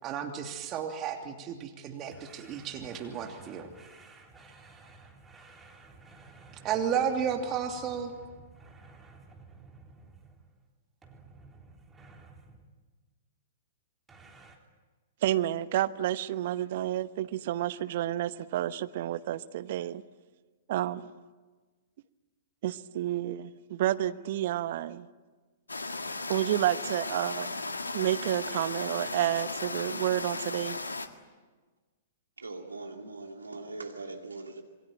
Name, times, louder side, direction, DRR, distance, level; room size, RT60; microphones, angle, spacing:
voice 1, 0.0-3.7 6.6-8.1, right 8 dB, 30° right, 2.9 m, -33 dB
sound 1, 2.1-10.6 11.0-12.7 14.1-14.6, right 3 dB, 10° right, 3.6 m, -53 dB
voice 2, 15.2-20.0 20.7-21.2 22.6-25.1 26.3-27.5 27.9-30.8, right 13 dB, 50° right, 1.0 m, -30 dB
sound 2, 25.7-31.1, left 3 dB, 80° left, 1.8 m, -36 dB
voice 3, 32.4-34.6, right 3 dB, 80° right, 2.4 m, -41 dB
27.5 x 23.0 x 8.9 m
figure-of-eight pair, 105°, 0 cm